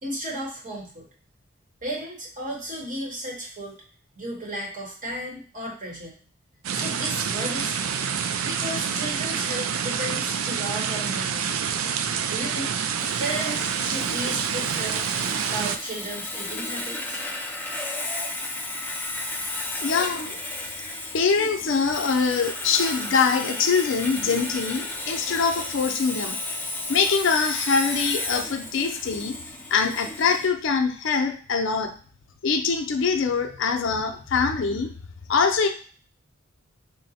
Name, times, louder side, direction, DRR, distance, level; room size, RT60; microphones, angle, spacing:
voice 1, 0.0-1.1 1.8-3.8 4.2-6.1 6.7-8.0 8.4-11.7 12.3-12.7 13.2-15.1 15.4-17.2, right 1 dB, 40° right, -2 dB, 1.0 m, -34 dB
sound 1, 6.6-15.8, right 7 dB, 80° right, 0.4 m, -27 dB
Sawing, 13.0-30.5, left 2 dB, 10° left, 0.4 m, -33 dB
voice 2, 19.8-20.4 21.1-26.4 26.6-29.4 29.7-31.9 32.4-34.9 35.3-35.7, left 5 dB, 65° left, 5 dB, 0.5 m, -23 dB
3.8 x 2.1 x 4.1 m, 0.42 s
head